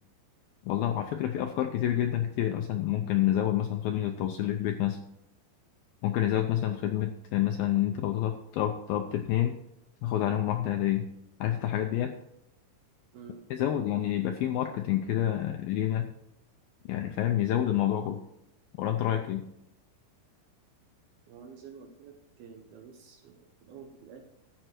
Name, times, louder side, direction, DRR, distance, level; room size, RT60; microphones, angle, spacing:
voice 1, 0.6-5.0 6.0-9.6 10.0-11.1 11.4-12.1 13.5-16.1 16.9-18.2 18.8-19.5, left 12 dB, 85° left, 5 dB, 2.1 m, -28 dB
voice 2, 13.1-14.4 21.3-24.3, right 6 dB, 70° right, 4 dB, 2.6 m, -50 dB
13.0 x 7.8 x 4.5 m, 0.80 s
omnidirectional pair, 5.1 m